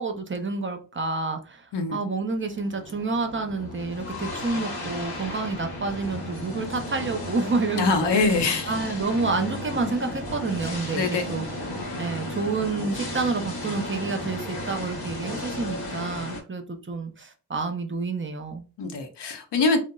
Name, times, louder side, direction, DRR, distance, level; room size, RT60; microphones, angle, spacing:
voice 1, 0.0-8.1 8.7-11.4 12.0-18.6, right 3 dB, 30° right, 6 dB, 0.6 m, -29 dB
sound 1, 2.4-16.4, left 1 dB, 60° left, 0.9 m, -34 dB
voice 2, 7.8-8.8 10.9-11.3 18.8-19.8, left 3 dB, 80° left, 5 dB, 0.7 m, -24 dB
2.8 x 2.0 x 2.2 m, 0.35 s
cardioid pair, 50°, 41 cm